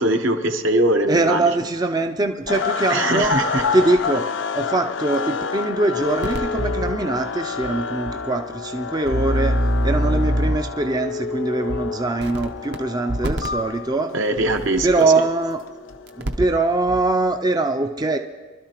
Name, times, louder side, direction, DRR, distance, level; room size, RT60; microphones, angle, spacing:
voice 1, 0.0-1.4 2.9-3.6 14.1-14.9, right 1 dB, 75° right, 5 dB, 1.0 m, -21 dB
voice 2, 1.1-3.4 3.7-9.6 9.8-14.2 14.8-15.6 16.2-18.2, right 2 dB, 20° right, 5 dB, 0.4 m, -22 dB
sound 1, 2.5-2.8 3.2-4.2 5.1-5.2 5.9-7.0 10.9-12.0 12.4-12.5 13.1-13.9 14.4-15.1 15.4-16.0, left 4 dB, 90° left, 0.7 m, -28 dB
sound 2, 2.5-16.6, left 5 dB, 70° left, 0.3 m, -31 dB
sound 3, 6.2-6.9 7.6-7.7 8.1-8.2 9.0-10.7 11.7-11.8 12.2-12.8 13.1-13.5 15.0-15.1 16.1-16.6 16.9-17.0, equal, 55° right, 0.6 m, -23 dB
24.0 x 12.5 x 2.9 m, 1.4 s
head